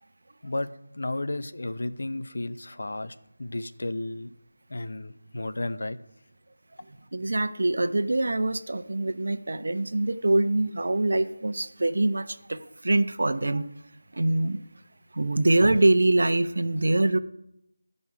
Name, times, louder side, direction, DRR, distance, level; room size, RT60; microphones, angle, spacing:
voice 1, 0.9-4.3 4.7-6.0, left 2 dB, 60° left, 11 dB, 0.9 m, -33 dB
voice 2, 7.1-13.6 14.1-14.6 15.2-17.2, right 2 dB, 60° right, 10 dB, 0.9 m, -24 dB
15.0 x 5.5 x 8.1 m, 0.83 s
figure-of-eight pair, 165°, 0 cm